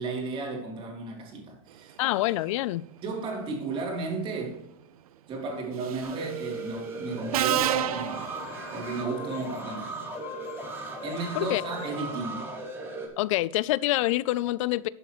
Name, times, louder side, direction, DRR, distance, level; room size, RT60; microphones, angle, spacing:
voice 1, 0.0-1.9 3.0-4.6 5.3-8.3 8.7-10.1 11.0-12.5, right 3 dB, 30° right, 3.2 m, -34 dB
voice 2, 2.0-2.8 11.4-11.6 13.2-14.9, left 17 dB, 60° left, 0.4 m, -26 dB
Subway metro underground, 5.8-6.2 7.3-9.0, right 11 dB, 85° right, 0.7 m, -29 dB
sound 1, 6.0-13.1, right 2 dB, 10° right, 2.1 m, -37 dB
sound 2, 7.9-12.3, left 15 dB, 35° left, 0.8 m, -45 dB
12.5 x 7.8 x 3.1 m
supercardioid pair, 150°, 18 cm